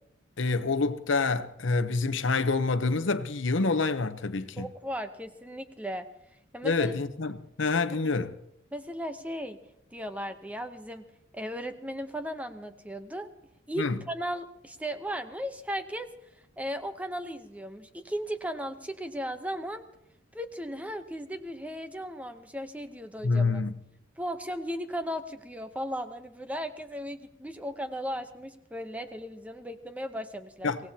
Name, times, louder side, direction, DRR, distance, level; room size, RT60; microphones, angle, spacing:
voice 1, 0.4-4.7 6.6-8.3 13.8-14.0 23.2-23.7 30.6-30.8, left 3 dB, 70° left, 0.8 m, -27 dB
voice 2, 4.6-6.1 6.5-6.9 7.9-8.0 8.7-9.6 9.9-11.0 11.3-13.3 13.7-16.1 16.6-19.8 20.3-23.6 24.2-30.7, equal, 5° right, 0.8 m, -36 dB
24.5 x 17.5 x 2.8 m
head